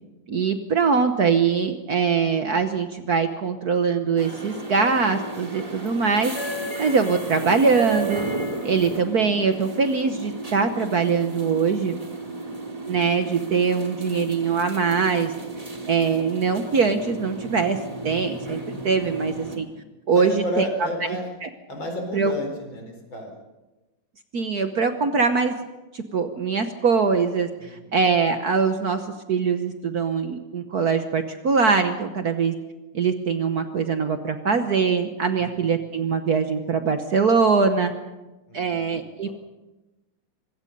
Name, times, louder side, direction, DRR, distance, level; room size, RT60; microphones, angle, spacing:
voice 1, 0.3-6.3 6.8-8.2 8.6-12.0 12.9-15.3 15.9-17.8 18.0-19.7 20.1-20.7 21.4-21.5 22.1-22.3 24.3-25.5 25.9-29.0 29.3-32.5 32.9-37.9 38.5-39.3, right 5 dB, 50° right, 8 dB, 1.3 m, -22 dB
sound 1, 4.2-19.6, right 2 dB, 15° right, 2.5 m, -33 dB
voice 2, 12.2-12.7 20.1-21.3 21.7-23.3 27.6-27.9 35.3-35.7 38.5-39.0 39.2-39.3, left 1 dB, 60° left, 3 dB, 5.1 m, -32 dB
25.0 x 22.0 x 5.4 m, 1.1 s
omnidirectional pair, 2.4 m